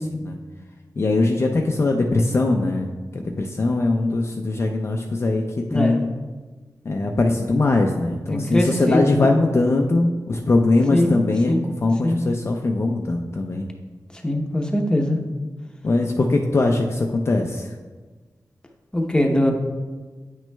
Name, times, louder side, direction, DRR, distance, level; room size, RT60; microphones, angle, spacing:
voice 1, 1.0-2.9 3.1-5.4 5.7-6.1 6.9-11.5 11.8-13.7 15.8-17.7, left 2 dB, 40° left, 2 dB, 0.4 m, -21 dB
voice 2, 8.3-9.3 10.9-11.1 11.5-11.6 12.0-12.2 14.2-15.2 18.9-19.5, left 1 dB, 10° left, 2 dB, 0.8 m, -21 dB
9.1 x 6.0 x 2.2 m, 1.3 s
wide cardioid pair, 120°, 7 cm